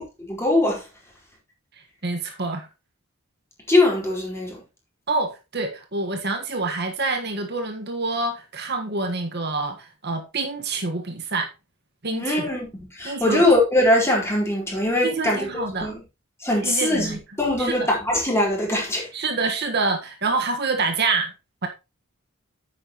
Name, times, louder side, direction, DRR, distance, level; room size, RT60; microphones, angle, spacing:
voice 1, 0.2-0.9 3.7-4.6 12.1-15.5 15.8-16.0 16.4-19.1, left 1 dB, 10° left, 4.6 m, -21 dB
voice 2, 2.0-2.7 5.1-11.5 12.0-12.5 13.0-13.4 15.0-15.9 16.6-17.2 17.6-17.8 19.1-21.3 21.6-21.7, right 3 dB, 50° right, 1.5 m, -26 dB
10.0 x 8.9 x 3.0 m
head